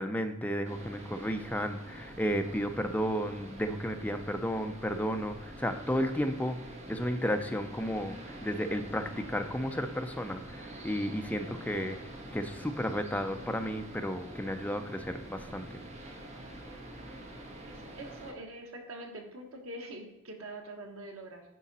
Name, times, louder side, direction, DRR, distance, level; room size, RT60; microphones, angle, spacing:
voice 1, 0.0-6.6 6.9-12.0 12.3-15.7, equal, 5° left, 6 dB, 0.6 m, -33 dB
sound 1, 0.6-18.3, right 1 dB, 30° right, 1.2 m, -46 dB
voice 2, 17.7-21.4, right 1 dB, 85° right, 2 dB, 1.4 m, -44 dB
10.0 x 5.0 x 4.2 m, 0.99 s
head